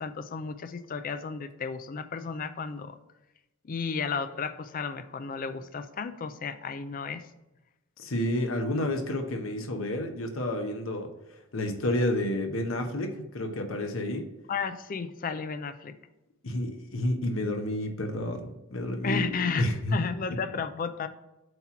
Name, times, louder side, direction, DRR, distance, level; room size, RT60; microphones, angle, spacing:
voice 1, 0.0-3.0 3.6-7.3 14.5-15.9 19.0-21.1, left 5 dB, 45° left, 10 dB, 0.4 m, -33 dB
voice 2, 8.0-11.1 11.5-14.3 16.4-20.0, left 1 dB, 80° left, 5 dB, 0.9 m, -30 dB
7.8 x 3.0 x 5.7 m, 0.98 s
head